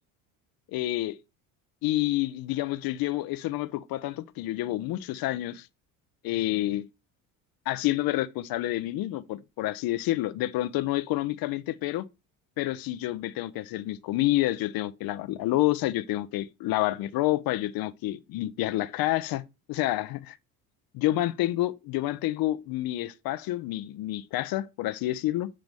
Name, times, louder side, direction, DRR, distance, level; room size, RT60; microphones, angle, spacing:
voice 1, 0.7-1.2 1.8-5.7 6.2-6.9 7.7-12.1 12.6-19.4 19.7-20.4 20.9-25.5, left 16 dB, 60° left, 0.7 m, -28 dB
7.6 x 3.9 x 3.5 m
supercardioid pair, 85°, 40 cm